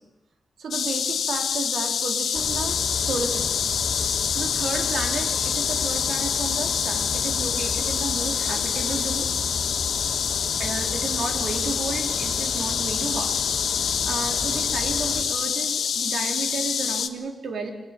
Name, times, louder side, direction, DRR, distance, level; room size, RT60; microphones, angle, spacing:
voice 1, 0.6-9.6 10.6-13.4 14.0-17.7, right 4 dB, 75° right, 4 dB, 3.7 m, -33 dB
sound 1, 0.7-17.1, left 7 dB, 80° left, 1.3 m, -26 dB
sound 2, 2.3-15.2, left 4 dB, 60° left, 2.4 m, -34 dB
24.0 x 18.5 x 9.3 m, 1.0 s
wide cardioid pair, 135°, 0 cm